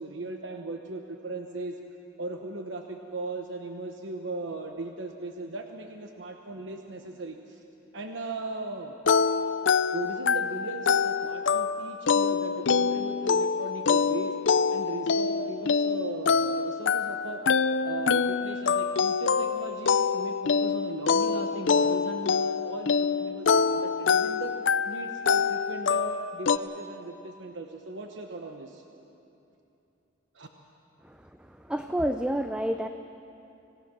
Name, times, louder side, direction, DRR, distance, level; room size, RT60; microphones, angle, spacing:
voice 1, 0.0-1.7 2.2-7.6 7.9-9.0 9.9-14.3 14.7-17.4 17.8-24.5 24.8-28.8 30.3-30.5, right 2 dB, 70° right, 4 dB, 1.0 m, -37 dB
sound 1, 9.1-26.6, left 5 dB, 75° left, 0.5 m, -25 dB
voice 2, 31.0-32.9, equal, 5° right, 7 dB, 0.4 m, -30 dB
26.0 x 17.5 x 6.1 m, 2.9 s
head